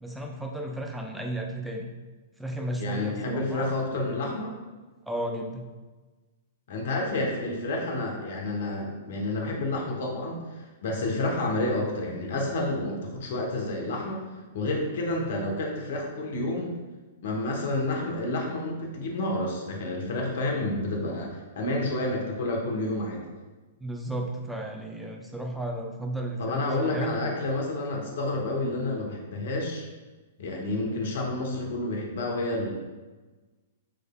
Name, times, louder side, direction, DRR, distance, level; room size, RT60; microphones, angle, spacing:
voice 1, 0.0-1.9 2.4-3.8 5.1-5.6 23.8-27.2, right 1 dB, 5° right, 1 dB, 0.6 m, -33 dB
voice 2, 2.8-4.6 6.7-14.2 14.5-16.7 17.2-23.2 26.4-29.9 30.4-32.8, left 2 dB, 65° left, 0 dB, 1.1 m, -29 dB
6.2 x 3.2 x 2.3 m, 1.2 s
hypercardioid pair, 110°, 0 cm